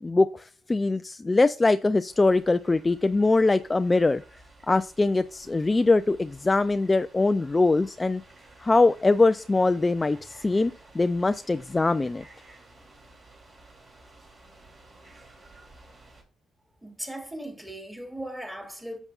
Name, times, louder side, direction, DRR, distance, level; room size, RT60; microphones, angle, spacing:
voice 1, 0.0-4.2 4.7-8.2 8.6-12.2, left 3 dB, 20° left, 0.3 m, -22 dB
sound 1, 2.1-16.2, right 2 dB, 40° right, 3.0 m, -53 dB
voice 2, 16.8-19.0, right 1 dB, 5° right, 2.5 m, -38 dB
10.5 x 7.2 x 2.4 m
cardioid pair, 90°, 0 cm